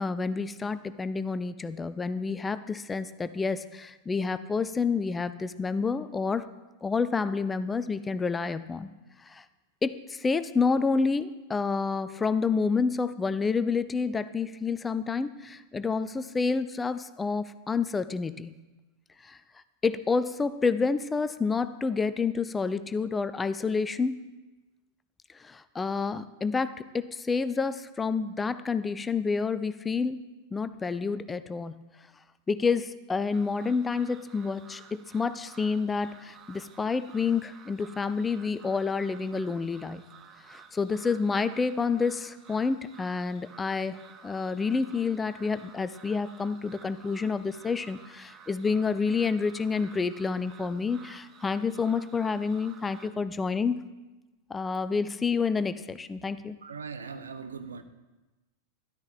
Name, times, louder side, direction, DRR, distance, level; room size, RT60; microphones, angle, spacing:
voice 1, 0.0-6.5 6.8-8.9 9.2-9.4 9.8-18.5 19.2-19.4 19.8-24.2 25.4-30.2 30.5-31.8 32.5-40.0 40.5-53.7 54.5-56.6, left 4 dB, 15° left, 0.5 m, -29 dB
sound 1, 33.3-53.1, right 7 dB, 25° right, 1.1 m, -53 dB
voice 2, 56.6-57.8, right 5 dB, 70° right, 1.0 m, -40 dB
13.0 x 12.0 x 4.3 m
figure-of-eight pair, 90°, 0 cm